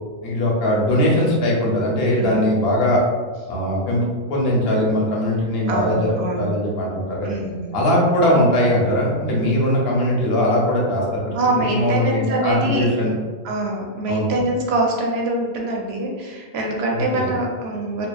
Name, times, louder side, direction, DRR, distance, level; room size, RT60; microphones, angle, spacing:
voice 1, 0.2-3.0 3.5-4.0 4.3-7.3 7.7-11.4 11.7-13.1 14.1-14.3 16.9-17.3, left 1 dB, 75° left, -3 dB, 0.9 m, -20 dB
voice 2, 5.7-6.5 7.2-7.8 11.3-12.9 13.4-18.1, right 2 dB, 85° right, 0 dB, 0.8 m, -24 dB
2.7 x 2.0 x 2.2 m, 1.4 s
omnidirectional pair, 1.0 m